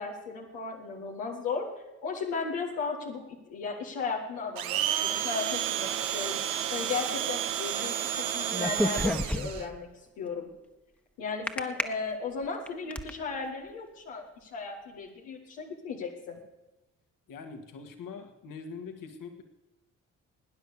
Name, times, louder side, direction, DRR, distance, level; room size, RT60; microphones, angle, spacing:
voice 1, 0.0-1.7 2.0-3.2 3.5-6.4 6.7-9.9 10.2-10.5 11.2-16.4, left 4 dB, 85° left, -1 dB, 1.8 m, -35 dB
Domestic sounds home sounds, 4.6-9.6, right 10 dB, 80° right, 1.0 m, -31 dB
sound 1, 8.5-9.8 11.5-11.8 12.4-13.1, left 1 dB, 5° left, 1.3 m, -29 dB
voice 2, 17.3-19.4, left 5 dB, 65° left, 6 dB, 2.1 m, -43 dB
19.0 x 9.7 x 6.8 m, 1.0 s
hypercardioid pair, 50°, 35 cm